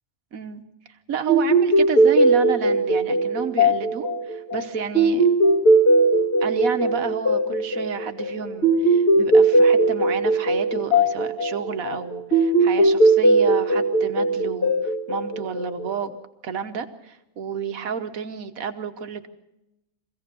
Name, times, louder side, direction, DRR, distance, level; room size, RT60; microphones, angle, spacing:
voice 1, 0.3-0.6 1.1-5.3 6.4-16.2 16.4-19.3, right 7 dB, 90° right, 8 dB, 1.6 m, -31 dB
sound 1, 1.3-16.1, right 2 dB, 45° left, 1.8 m, -19 dB
24.5 x 16.5 x 6.9 m, 0.90 s
omnidirectional pair, 1.4 m